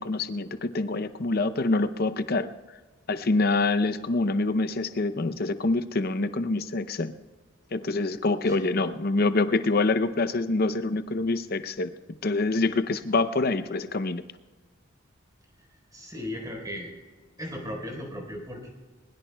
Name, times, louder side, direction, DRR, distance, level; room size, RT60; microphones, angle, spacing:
voice 1, 0.0-2.5 3.1-7.1 7.7-11.9 12.2-14.2, left 3 dB, 50° left, 12 dB, 0.6 m, -26 dB
voice 2, 15.9-16.9 17.4-18.7, left 1 dB, 20° right, 2 dB, 3.8 m, -36 dB
21.5 x 21.5 x 2.3 m, 1.3 s
head